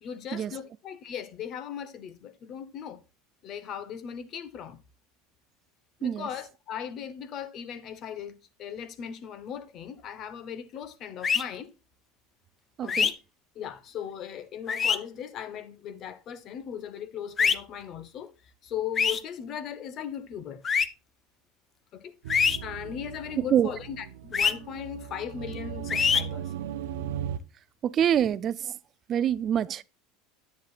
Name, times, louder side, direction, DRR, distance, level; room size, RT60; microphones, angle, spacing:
voice 1, 0.0-3.0 3.4-4.8 6.0-11.7 12.8-13.1 13.5-20.6 21.9-22.1 22.6-26.5, left 9 dB, 45° left, 1.0 m, -38 dB
sound 1, 11.2-11.4 12.9-13.1 14.7-15.0 17.4-17.5 18.9-19.2 20.6-20.8 22.3-22.6 24.3-24.5 25.9-26.2, left 6 dB, 25° left, 0.6 m, -23 dB
voice 2, 12.8-13.1 23.4-23.7 27.8-28.8 29.1-29.8, right 10 dB, 35° right, 0.4 m, -26 dB
sound 2, 22.2-27.4, right 9 dB, 85° right, 0.6 m, -37 dB
10.0 x 8.3 x 2.4 m
supercardioid pair, 125°, 0 cm